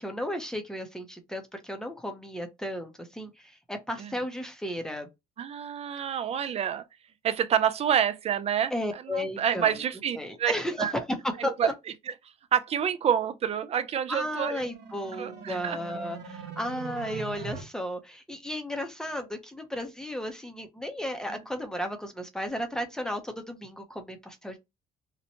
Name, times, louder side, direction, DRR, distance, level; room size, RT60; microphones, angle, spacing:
voice 1, 0.0-5.1 8.7-9.8 10.2-11.7 14.1-24.6, equal, 5° left, 0.6 m, -34 dB
voice 2, 5.4-6.8 7.2-8.7 9.0-10.5 10.8-11.0 11.4-11.7 12.5-14.6 15.2-15.8 21.3-21.4, right 8 dB, 40° right, 0.4 m, -28 dB
sound 1, 14.3-17.6, right 6 dB, 85° right, 0.9 m, -41 dB
2.9 x 2.1 x 2.7 m
cardioid pair, 110°, 17 cm